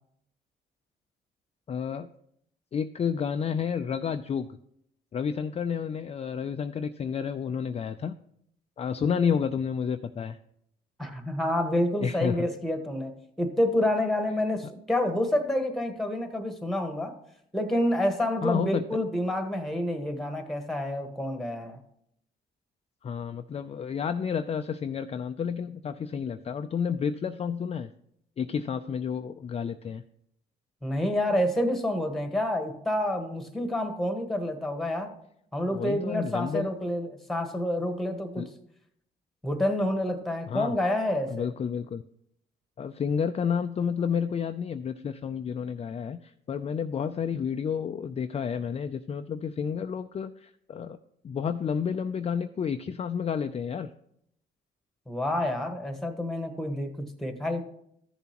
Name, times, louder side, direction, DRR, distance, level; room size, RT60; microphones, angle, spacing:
voice 1, 1.7-2.1 2.7-4.5 5.1-8.1 8.8-10.4 12.0-12.5 18.4-18.8 23.0-27.9 28.4-30.0 35.7-36.7 38.4-38.5 40.5-40.8 41.3-42.0 42.8-51.0 51.2-53.9, left 7 dB, 30° left, 8 dB, 0.4 m, -30 dB
voice 2, 11.0-17.2 17.5-21.8 30.8-35.1 35.5-38.5 39.4-41.5 55.1-57.6, left 1 dB, ahead, 5 dB, 1.3 m, -28 dB
14.0 x 6.9 x 2.9 m, 0.73 s
cardioid pair, 90°, 20 cm